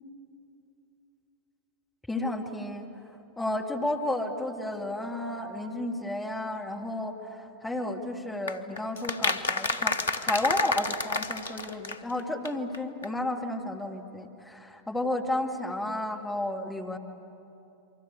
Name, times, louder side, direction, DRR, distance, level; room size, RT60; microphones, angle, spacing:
voice 1, 2.1-2.9 3.4-17.0, left 1 dB, 5° left, 2 dB, 2.3 m, -32 dB
sound 1, 8.5-12.2 12.4-12.5 12.7-12.8 13.0-13.1, left 3 dB, 70° left, 1.0 m, -30 dB
27.5 x 24.0 x 8.3 m, 2.9 s
figure-of-eight pair, 90°, 0 cm